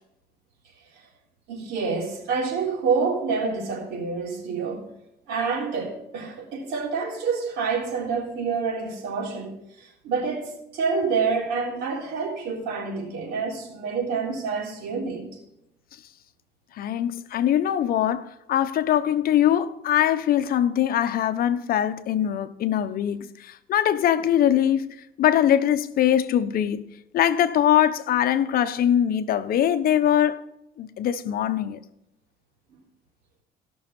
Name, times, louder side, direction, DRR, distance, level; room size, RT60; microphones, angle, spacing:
voice 1, 1.5-4.9 5.3-9.5 9.8-15.4, right 5 dB, 85° right, 3.5 m, -27 dB
voice 2, 16.7-30.4 30.8-31.8, left 10 dB, 60° left, 0.9 m, -22 dB
16.0 x 6.4 x 5.3 m
cardioid pair, 110°, 17 cm